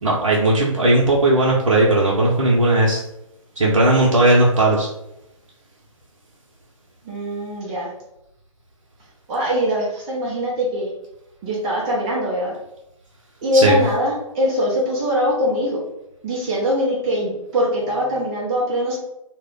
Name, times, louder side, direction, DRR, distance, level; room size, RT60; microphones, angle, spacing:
voice 1, 0.0-3.0 3.6-4.9 13.5-13.8, right 2 dB, 70° right, -4 dB, 0.7 m, -16 dB
voice 2, 7.0-7.9 9.3-10.9 11.4-12.6 13.4-15.8 16.2-19.0, equal, 15° right, -5 dB, 0.4 m, -22 dB
2.4 x 2.1 x 3.6 m, 0.86 s
figure-of-eight pair, 135°, 17 cm